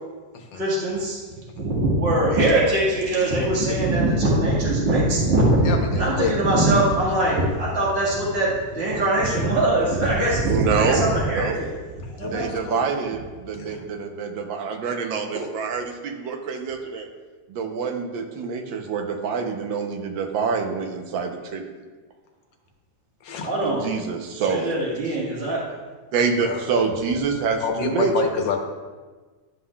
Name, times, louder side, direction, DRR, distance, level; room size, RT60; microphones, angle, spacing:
voice 1, 0.5-1.2 1.5-11.7 12.0-12.5 23.4-24.0 24.4-25.8, right 1 dB, 35° right, -5 dB, 1.9 m, -22 dB
voice 2, 5.6-6.3 12.2-12.8 13.5-13.8 23.2-23.5 26.4-26.6 27.6-28.6, left 5 dB, 75° left, 3 dB, 1.6 m, -28 dB
voice 3, 10.5-11.0 11.3-11.6 12.3-17.1 17.5-21.7 23.6-24.7 26.1-28.3, right 5 dB, 80° right, 4 dB, 1.5 m, -26 dB
11.5 x 5.6 x 2.3 m, 1.4 s
omnidirectional pair, 2.0 m